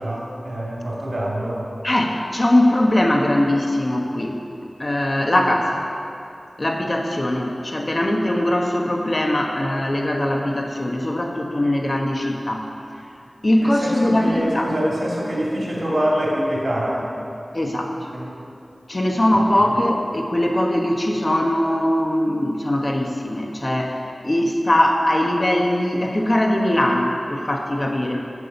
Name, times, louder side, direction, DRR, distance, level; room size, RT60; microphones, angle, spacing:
voice 1, 0.0-1.6 13.6-17.1 18.1-18.3, equal, 65° right, -5 dB, 2.6 m, -25 dB
voice 2, 1.8-4.4 4.8-5.9 6.6-12.7 13.4-14.7 17.5-18.1 18.9-28.2, left 1 dB, 40° left, 1 dB, 1.2 m, -21 dB
8.3 x 7.0 x 7.0 m, 2.6 s
wide cardioid pair, 70°, 0 cm